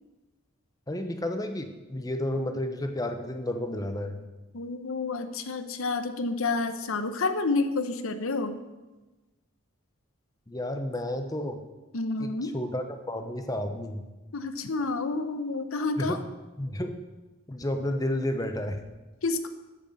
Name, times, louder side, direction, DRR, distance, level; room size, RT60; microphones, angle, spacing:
voice 1, 0.9-4.2 10.5-11.6 12.2-14.0 16.0-16.2 16.6-17.0 17.5-18.8, left 1 dB, 15° left, 7 dB, 0.8 m, -31 dB
voice 2, 4.5-8.6 11.9-12.6 14.3-16.3 19.2-19.5, left 3 dB, 75° left, 10 dB, 0.9 m, -29 dB
9.2 x 8.0 x 7.0 m, 1.1 s
head